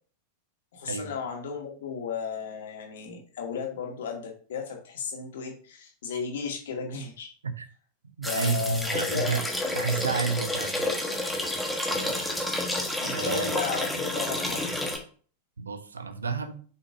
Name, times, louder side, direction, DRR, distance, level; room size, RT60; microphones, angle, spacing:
voice 1, 0.7-7.3 8.2-9.3 9.6-10.0 11.9-12.2 13.0-14.7, left 6 dB, 60° left, 1 dB, 2.0 m, -35 dB
sound 1, 8.2-15.0, left 1 dB, ahead, 1.5 m, -30 dB
voice 2, 8.2-9.4 9.7-10.9 13.1-13.5 15.6-16.6, right 4 dB, 75° right, 10 dB, 0.9 m, -30 dB
6.7 x 5.9 x 2.7 m, 0.43 s
figure-of-eight pair, 90°, 0 cm